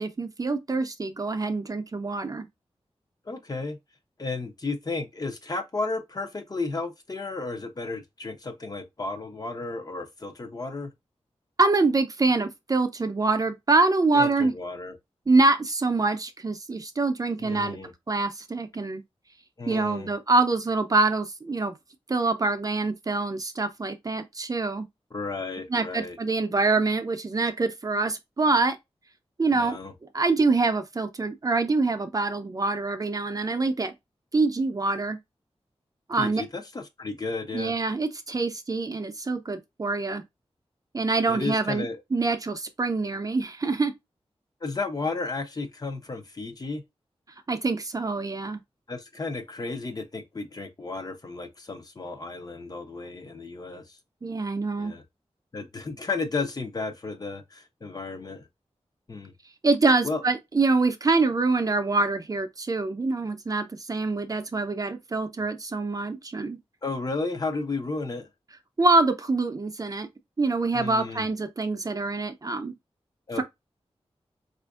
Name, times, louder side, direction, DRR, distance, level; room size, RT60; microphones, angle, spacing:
voice 1, 0.0-2.5 11.6-14.5 15.3-17.8 18.1-19.0 19.7-21.7 22.1-24.9 25.7-28.8 29.4-29.8 30.1-33.9 34.3-35.2 36.1-36.4 37.5-40.2 40.9-41.9 42.1-43.9 47.5-48.6 54.2-54.9 59.6-66.6 68.8-70.1 70.4-72.7 73.4-73.5, right 3 dB, 35° right, 0.5 m, -25 dB
voice 2, 3.3-3.8 4.2-10.9 14.1-14.9 17.4-17.9 19.6-20.1 25.1-26.2 29.5-29.9 36.1-37.7 41.3-42.0 44.6-46.8 48.9-54.0 54.8-55.0 55.5-58.5 59.1-59.3 60.0-60.2 66.8-68.3 70.7-71.3 73.3-73.4, left 3 dB, 35° left, 0.6 m, -33 dB
4.4 x 2.5 x 2.3 m
wide cardioid pair, 110°, 11 cm